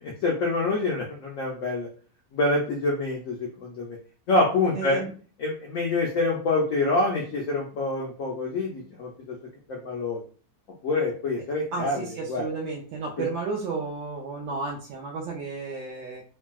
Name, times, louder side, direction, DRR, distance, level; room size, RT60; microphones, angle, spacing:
voice 1, 0.0-1.9 2.3-4.0 4.3-5.0 5.4-9.4 9.7-10.2 10.8-12.5, left 2 dB, 80° left, -1 dB, 0.7 m, -26 dB
voice 2, 4.7-5.1 11.7-16.2, right 4 dB, 85° right, -2 dB, 1.3 m, -32 dB
3.1 x 2.6 x 2.3 m, 0.42 s
omnidirectional pair, 2.0 m